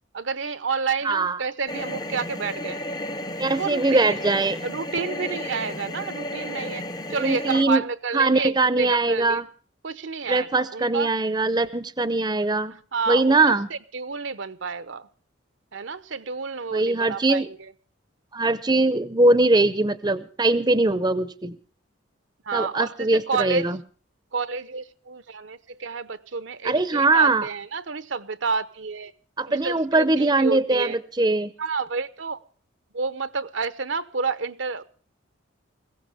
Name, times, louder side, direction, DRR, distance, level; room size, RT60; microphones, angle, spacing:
voice 1, 0.1-2.8 3.4-4.1 4.6-9.4 9.8-11.1 12.9-15.1 15.7-17.7 22.5-23.7 24.3-29.1 29.5-31.0 31.6-32.4 32.9-34.8, right 5 dB, 65° right, 0.8 m, -30 dB
voice 2, 1.0-1.4 3.4-4.6 7.2-7.8 8.1-9.4 10.3-12.7 13.1-13.7 16.7-17.5 18.3-21.6 22.5-23.8 26.6-27.5 29.4-31.5, right 2 dB, 20° right, 0.7 m, -21 dB
sound 1, 1.7-7.6, left 1 dB, 20° left, 0.7 m, -33 dB
21.5 x 16.5 x 3.5 m
head